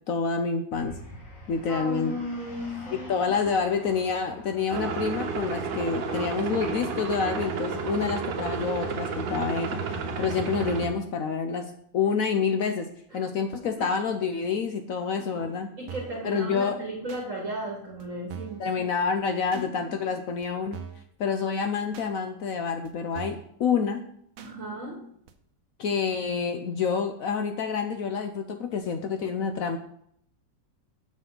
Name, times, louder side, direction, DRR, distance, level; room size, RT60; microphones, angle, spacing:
voice 1, 0.1-0.9 1.5-2.1 3.1-12.9 13.1-15.7 16.2-16.8 18.6-20.8 21.2-24.0 25.8-29.8, left 5 dB, 70° left, 6 dB, 0.8 m, -28 dB
sound 1, 0.7-7.9, equal, 45° left, 2.0 m, -45 dB
voice 2, 1.7-3.5 13.1-13.3 13.6-13.9 15.3-18.6 19.7-20.0 24.4-25.0, equal, 45° right, -2 dB, 1.6 m, -36 dB
sound 2, 4.7-10.9, right 5 dB, 90° right, 1.6 m, -31 dB
sound 3, 15.9-16.2 17.1-17.2 18.0-18.1 18.3-18.6 19.5-19.7 20.4-20.5 20.7-21.1 21.9-22.1 22.8-22.9 23.1-23.5 24.4-24.5 25.3-25.4, right 7 dB, 65° right, 0.9 m, -41 dB
7.6 x 6.2 x 3.8 m, 0.68 s
omnidirectional pair, 2.0 m